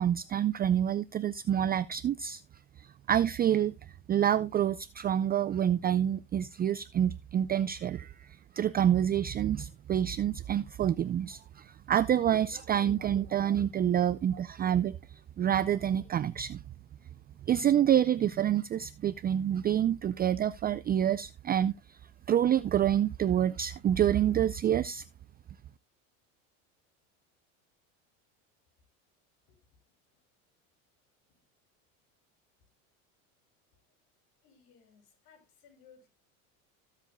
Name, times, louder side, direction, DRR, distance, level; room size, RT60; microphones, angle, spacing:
voice 1, 0.0-2.4 2.8-3.7 4.1-8.3 8.6-16.6 17.5-22.0 22.3-25.0, right 10 dB, 25° right, 0.4 m, -27 dB
voice 2, 34.4-36.1, left 6 dB, 65° left, 6.1 m, -60 dB
17.0 x 7.5 x 2.2 m
supercardioid pair, 95°, 40 cm